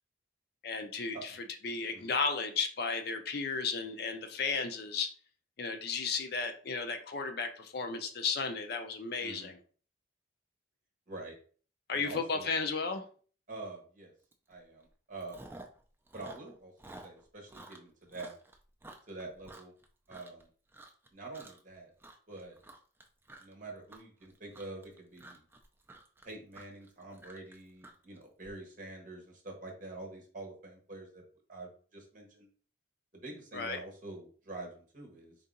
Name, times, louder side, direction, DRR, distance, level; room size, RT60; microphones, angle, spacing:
voice 1, 0.6-1.4 1.6-5.1 5.6-9.6 11.9-13.0 33.5-33.8, left 4 dB, 50° left, 7 dB, 0.5 m, -34 dB
voice 2, 11.9-12.5 13.5-14.1 14.5-15.5 16.1-16.7 17.0-18.3 19.1-19.7 20.1-20.5 21.1-21.9 22.3-22.6 23.4-25.4 26.2-31.2 31.5-32.5 33.1-35.4, right 2 dB, 40° right, 1 dB, 1.2 m, -46 dB
Chewing mastication, 14.3-14.5 14.8-15.8 16.1-20.4 20.7-21.1 21.3-21.7 22.0-28.5, right 2 dB, 10° right, 0.4 m, -52 dB
4.0 x 2.8 x 3.7 m, 0.42 s
head